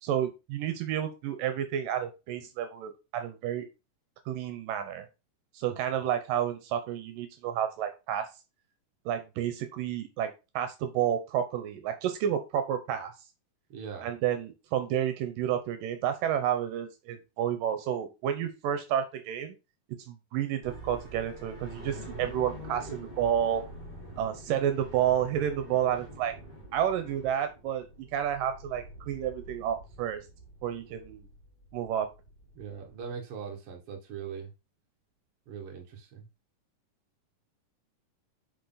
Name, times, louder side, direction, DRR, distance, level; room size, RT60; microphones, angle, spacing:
voice 1, 0.0-3.7 4.3-5.1 5.5-8.3 9.1-13.1 14.0-19.6 19.9-23.7 24.2-26.3 26.7-30.3 30.6-31.3 31.7-32.1, right 10 dB, 80° right, 2.4 m, -30 dB
voice 2, 13.7-14.1 32.5-34.5 35.5-36.3, right 6 dB, 50° right, 2.2 m, -41 dB
sound 1, 20.6-33.1, right 1 dB, 15° left, 3.6 m, -46 dB
6.6 x 5.1 x 3.9 m
omnidirectional pair, 3.9 m